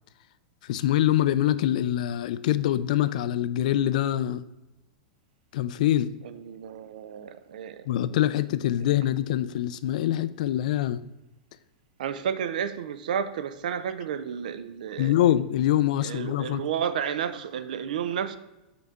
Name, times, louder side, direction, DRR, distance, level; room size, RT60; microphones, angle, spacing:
voice 1, 0.6-4.5 5.5-6.1 7.9-11.0 15.0-16.6, left 12 dB, 65° left, 15 dB, 0.3 m, -24 dB
voice 2, 6.2-7.9 12.0-15.1 16.0-18.4, right 8 dB, 80° right, 13 dB, 0.5 m, -31 dB
5.8 x 5.2 x 3.6 m, 1.0 s
supercardioid pair, 140°, 4 cm